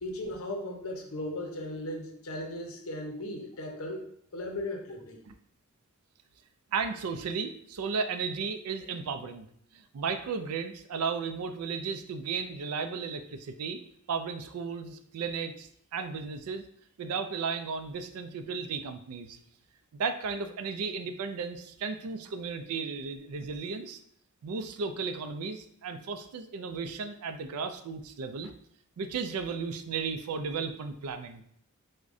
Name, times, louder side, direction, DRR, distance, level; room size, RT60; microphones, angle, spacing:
voice 1, 0.0-4.0 4.3-5.2, left 1 dB, 70° left, 2 dB, 0.6 m, -37 dB
voice 2, 6.7-9.5 9.7-13.8 14.1-16.6 17.0-19.4 19.9-24.0 24.4-28.5 29.0-31.4, right 5 dB, 80° right, 8 dB, 0.4 m, -34 dB
4.7 x 2.1 x 2.5 m, 0.65 s
head